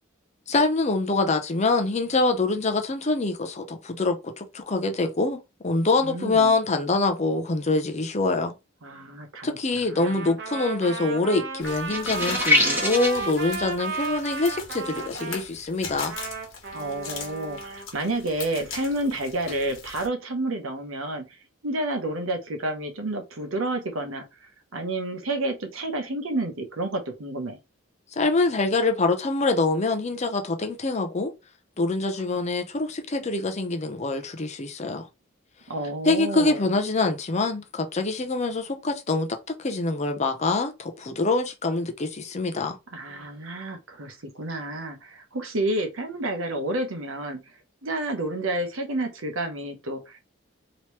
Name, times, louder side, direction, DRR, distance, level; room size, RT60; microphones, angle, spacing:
voice 1, 0.5-5.4 5.6-8.5 9.4-16.1 28.2-31.3 31.8-35.1 36.0-39.3 39.6-42.8, left 3 dB, 35° left, 0.5 m, -25 dB
voice 2, 6.0-6.5 8.8-10.3 16.7-21.4 21.6-27.6 35.7-36.6 42.9-47.4 47.8-50.2, right 1 dB, 80° right, 0.9 m, -30 dB
Trumpet, 9.9-15.4 15.9-17.9, right 4 dB, 55° right, 0.8 m, -34 dB
sound 1, 11.6-20.1, left 4 dB, 80° left, 1.2 m, -39 dB
sound 2, 11.9-13.2, left 1 dB, 10° right, 0.8 m, -23 dB
3.1 x 2.9 x 3.1 m
head